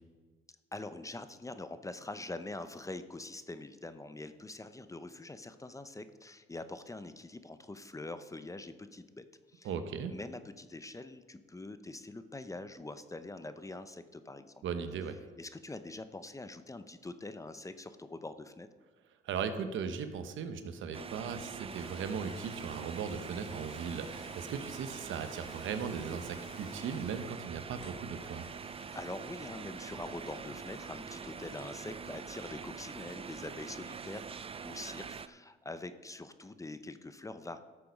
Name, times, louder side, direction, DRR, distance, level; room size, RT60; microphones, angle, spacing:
voice 1, 0.7-9.7 10.1-14.6 15.4-18.7 28.9-37.6, left 2 dB, 15° left, 11 dB, 0.7 m, -44 dB
voice 2, 9.6-10.1 14.6-15.2 19.2-28.4, right 6 dB, 75° right, 9 dB, 1.1 m, -38 dB
sound 1, 20.9-35.3, right 6 dB, 30° right, 0.5 m, -44 dB
sound 2, 21.7-32.3, left 3 dB, 70° left, 4.0 m, -56 dB
13.0 x 6.9 x 5.3 m, 1.4 s
cardioid pair, 90°, 20 cm